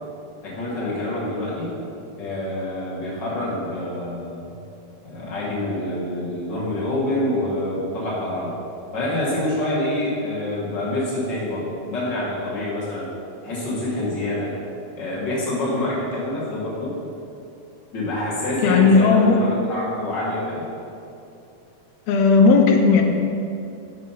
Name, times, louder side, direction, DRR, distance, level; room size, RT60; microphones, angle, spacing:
voice 1, 0.4-1.8 2.2-4.5 5.0-8.5 8.9-13.1 13.4-14.5 14.9-17.0 17.9-20.6, left 1 dB, 50° left, -7 dB, 1.4 m, -26 dB
voice 2, 18.6-19.4 22.1-23.0, left 4 dB, 80° left, 3 dB, 1.6 m, -15 dB
6.6 x 4.2 x 5.5 m, 2.7 s
omnidirectional pair, 3.8 m